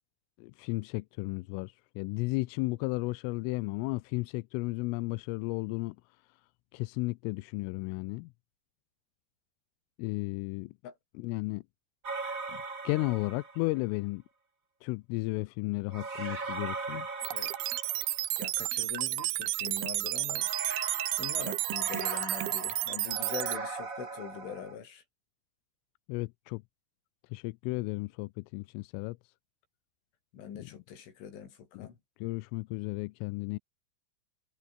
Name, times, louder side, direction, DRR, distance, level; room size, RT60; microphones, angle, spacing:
voice 1, 0.4-6.0 6.3-6.4 6.7-8.3 10.0-10.7 11.1-11.6 12.5-14.2 14.8-17.1 26.1-26.6 27.3-29.3 30.6-30.7 31.7-31.9 32.2-33.6, left 24 dB, 85° left, 3.2 m, -34 dB
sound 1, 12.0-13.8 15.9-18.4 20.4-24.8, right 4 dB, 25° right, 2.0 m, -39 dB
sound 2, 17.2-23.6, right 17 dB, 80° right, 2.2 m, -32 dB
voice 2, 18.4-20.5 21.2-25.0 30.3-32.0, left 8 dB, 70° left, 6.4 m, -43 dB
omnidirectional pair, 5.9 m